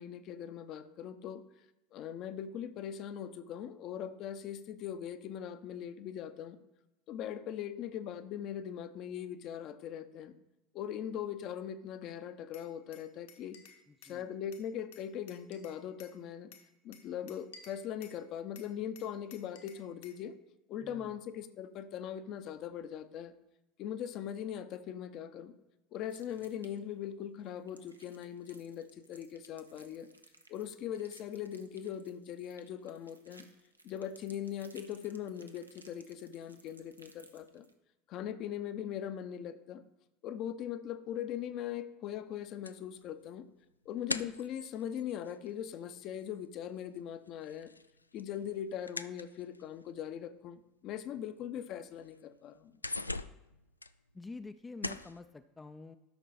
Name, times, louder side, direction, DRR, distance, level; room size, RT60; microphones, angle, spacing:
voice 1, 0.0-1.4 1.9-6.6 7.1-10.3 10.7-13.6 14.0-16.5 16.8-20.3 20.7-23.3 23.8-25.5 25.9-30.1 30.5-33.5 33.8-37.7 38.1-39.8 40.2-43.5 43.8-47.7 48.1-52.8, left 9 dB, 45° left, 11 dB, 0.7 m, -40 dB
Glass, 12.5-14.2 14.5-16.2 16.5-18.2 18.6-20.2, left 6 dB, 65° left, 1.2 m, -56 dB
voice 2, 13.9-14.3 20.8-21.1 54.1-56.0, left 3 dB, 15° left, 9 dB, 0.4 m, -48 dB
sound 1, 26.1-26.9 27.4-37.7, right 2 dB, 85° right, 0.8 m, -60 dB
sound 2, 42.7-46.4 46.6-49.9 50.6-50.7 51.2-51.3 51.6-52.2 52.5-54.5 54.8-55.2, left 3 dB, 85° left, 0.3 m, -42 dB
12.5 x 6.1 x 4.2 m, 0.94 s
figure-of-eight pair, 75°, 0 cm